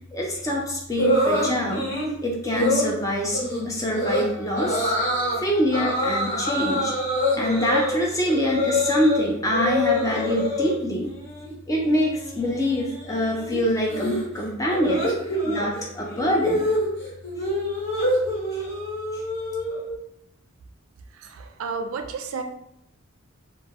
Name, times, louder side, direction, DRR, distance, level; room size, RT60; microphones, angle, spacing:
voice 1, 0.1-1.8 2.2-3.4 3.6-4.9 5.4-6.9 7.4-11.1 11.7-15.1 15.4-16.6, equal, 15° left, -2 dB, 0.4 m, -25 dB
sound 1, 1.0-2.1 2.5-2.9 3.3-3.6 3.9-4.2 4.6-5.4 5.7-9.2 9.5-10.8 11.1-11.5 11.8-19.9, left 1 dB, 45° left, 1.2 m, -26 dB
Wind instrument woodwind instrument, 3.9-7.8, right 3 dB, 75° left, 0.9 m, -44 dB
voice 2, 21.1-22.4, right 5 dB, 85° right, 7 dB, 0.3 m, -32 dB
2.1 x 2.1 x 3.4 m, 0.79 s
head